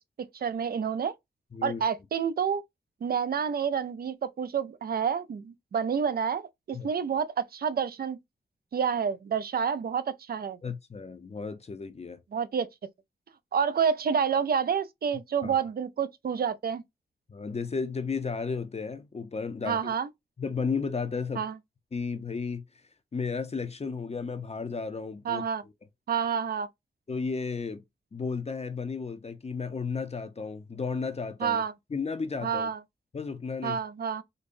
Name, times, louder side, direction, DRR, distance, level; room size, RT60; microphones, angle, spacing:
voice 1, 0.2-1.1 1.6-2.6 3.0-8.2 8.7-10.6 12.3-12.7 13.5-16.8 19.7-20.1 21.4-21.6 25.3-25.6 26.1-26.7 31.4-31.7 32.4-32.8 33.6-34.2, right 7 dB, 55° right, 0.5 m, -29 dB
voice 2, 1.5-1.8 6.7-6.9 10.6-12.2 15.4-15.6 17.3-19.9 20.4-21.5 21.9-22.6 23.1-25.4 27.1-27.8 28.1-31.6 31.9-32.7 33.1-33.8, left 5 dB, 35° left, 0.6 m, -33 dB
5.1 x 2.1 x 2.5 m
cardioid pair, 60°, 19 cm